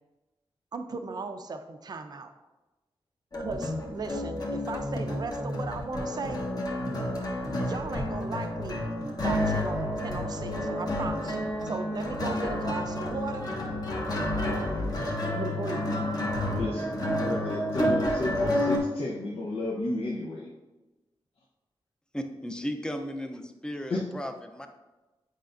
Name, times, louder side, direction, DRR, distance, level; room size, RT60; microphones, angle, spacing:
voice 1, 0.7-2.3 3.4-6.4 7.6-8.8 9.2-13.5 15.0-15.9, right 4 dB, 45° right, 7 dB, 0.5 m, -37 dB
sound 1, 3.3-18.8, left 1 dB, 40° left, 1.1 m, -30 dB
voice 2, 16.5-16.9 17.2-20.5 23.9-24.0, left 2 dB, 75° left, -3 dB, 0.8 m, -32 dB
voice 3, 22.1-24.7, equal, 10° left, 6 dB, 0.5 m, -35 dB
8.2 x 5.0 x 2.5 m, 1.1 s
wide cardioid pair, 125°, 10 cm